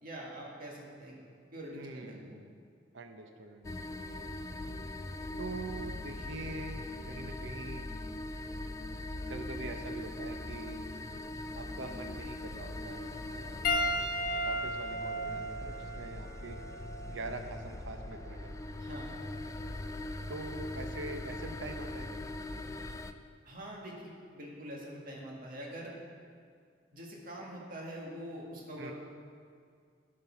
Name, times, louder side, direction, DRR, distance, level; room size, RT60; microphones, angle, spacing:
voice 1, 0.0-1.1 1.5-2.4 18.8-19.1 23.5-25.9 26.9-28.9, equal, 50° right, -3 dB, 1.8 m, -44 dB
voice 2, 1.7-2.5 2.9-4.3 5.4-7.9 9.3-10.9 11.5-13.8 14.4-16.6 17.1-18.6 20.3-22.3 28.8-28.9, right 3 dB, 85° right, 5 dB, 0.7 m, -44 dB
sound 1, 3.6-23.1, left 2 dB, 15° left, 0.3 m, -41 dB
Piano, 13.6-18.3 19.2-19.4 21.4-21.5, left 1 dB, 50° left, 0.8 m, -35 dB
12.0 x 5.3 x 5.8 m, 2.2 s
head